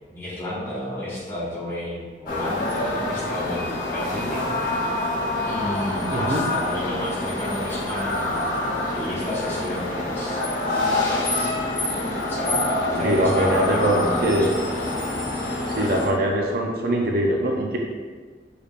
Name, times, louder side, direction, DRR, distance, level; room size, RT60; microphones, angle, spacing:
voice 1, 0.0-4.5 5.5-8.6 8.9-11.5 12.3-14.5, left 1 dB, 15° left, -9 dB, 1.5 m, -31 dB
sound 1, 2.3-16.1, left 2 dB, 50° left, 1.0 m, -26 dB
voice 2, 6.1-6.5 13.0-14.5 15.7-17.8, right 1 dB, 55° right, 0 dB, 0.5 m, -22 dB
6.5 x 3.3 x 2.4 m, 1.5 s
head